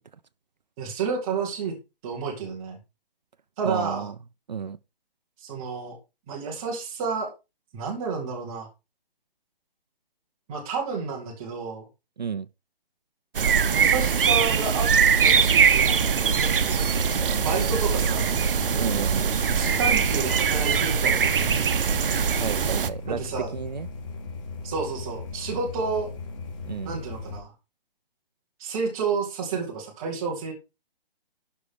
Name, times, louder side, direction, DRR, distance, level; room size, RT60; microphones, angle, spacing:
voice 1, 0.8-1.7 2.0-2.8 3.6-4.1 5.4-6.0 6.3-7.3 7.7-8.7 10.5-11.9 13.7-14.9 15.2-16.9 17.4-18.3 19.5-21.9 23.1-23.5 24.6-26.1 26.8-27.5 28.6-30.5, right 5 dB, 5° right, 0.6 m, -30 dB
voice 2, 3.6-4.1 4.5-4.8 12.2-12.5 18.8-19.3 22.4-23.2 23.5-23.9 26.7-27.0, right 6 dB, 50° right, 0.5 m, -32 dB
sound 1, 13.3-22.9, right 6 dB, 65° right, 0.9 m, -22 dB
sound 2, 16.8-27.4, left 3 dB, 30° left, 3.6 m, -37 dB
11.5 x 5.6 x 4.8 m
hypercardioid pair, 170°, 29 cm